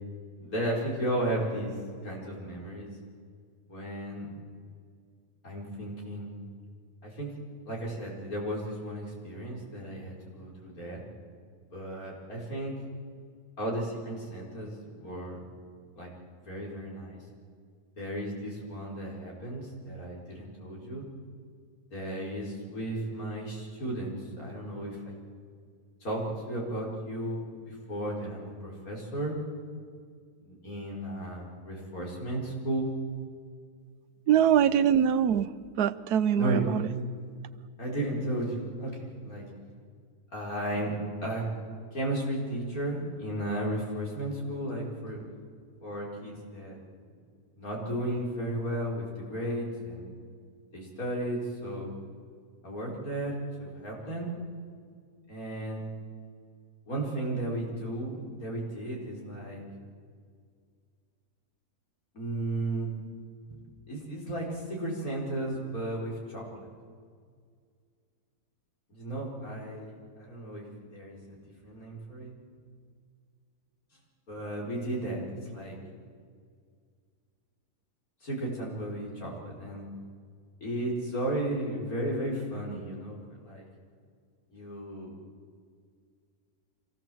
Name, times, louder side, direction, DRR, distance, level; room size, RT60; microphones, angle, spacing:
voice 1, 0.4-1.7 2.0-2.9 3.7-4.3 5.4-6.4 7.0-7.3 7.7-11.0 11.7-12.7 13.6-15.5 16.0-16.1 16.4-17.2 18.0-21.0 21.9-25.2 26.0-26.2 26.5-29.4 30.4-32.9 34.6-34.8 36.3-36.7 37.8-39.5 40.3-40.9 41.2-41.5 41.9-45.2 45.8-46.8 47.6-50.1 50.7-51.9 52.6-54.3 55.3-55.8 56.9-59.6 62.1-62.9 63.5-63.6 63.9-66.7 68.9-71.4 71.6-72.3 74.3-75.8 78.2-79.9 80.6-83.7 84.5-85.1, right 1 dB, 65° left, -3 dB, 5.4 m, -34 dB
voice 2, 34.3-35.5 35.8-36.8, right 9 dB, 85° right, 14 dB, 1.3 m, -23 dB
25.0 x 17.0 x 7.8 m, 2.1 s
omnidirectional pair, 1.6 m